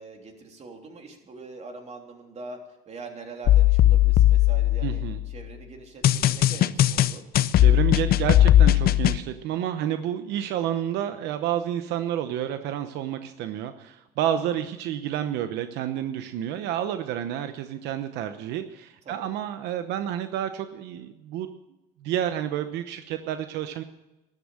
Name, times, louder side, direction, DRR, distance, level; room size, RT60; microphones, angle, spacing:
voice 1, 0.0-2.6 2.9-5.0 5.3-7.2 19.0-19.3, right 3 dB, 40° right, 3 dB, 3.3 m, -43 dB
sound 1, 3.5-5.3 6.0-9.2, left 13 dB, 65° left, 0.6 m, -18 dB
voice 2, 4.8-5.2 7.6-21.5 22.0-23.8, right 11 dB, 90° right, 9 dB, 0.9 m, -30 dB
13.0 x 12.0 x 7.4 m, 0.97 s
cardioid pair, 110°, 17 cm